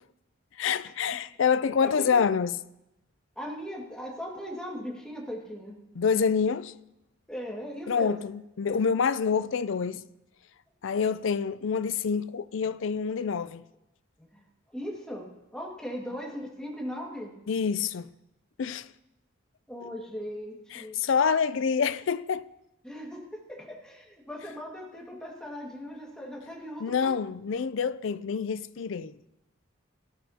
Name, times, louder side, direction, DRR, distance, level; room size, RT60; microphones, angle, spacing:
voice 1, 0.6-2.5 6.0-6.7 7.9-10.0 10.8-13.6 17.5-18.1 18.6-18.9 20.7-22.4 26.8-29.1, left 6 dB, 65° left, 0.4 m, -27 dB
voice 2, 1.8-2.2 3.4-5.8 7.3-8.2 14.2-14.4 14.7-17.3 19.7-21.0 22.8-27.1, equal, 5° left, 1.9 m, -39 dB
18.0 x 13.0 x 2.9 m
head